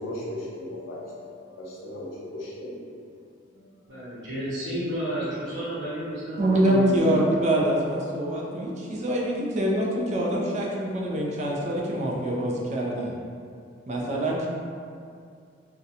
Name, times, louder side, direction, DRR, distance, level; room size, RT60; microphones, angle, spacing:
voice 1, 0.0-2.9 3.5-4.1, left 1 dB, 80° left, -6 dB, 0.6 m, -37 dB
voice 2, 3.9-7.2, equal, 65° right, -10 dB, 1.1 m, -31 dB
voice 3, 6.4-13.1 13.9-14.5, right 1 dB, 35° right, -3 dB, 0.4 m, -25 dB
2.4 x 2.1 x 2.7 m, 2.3 s
head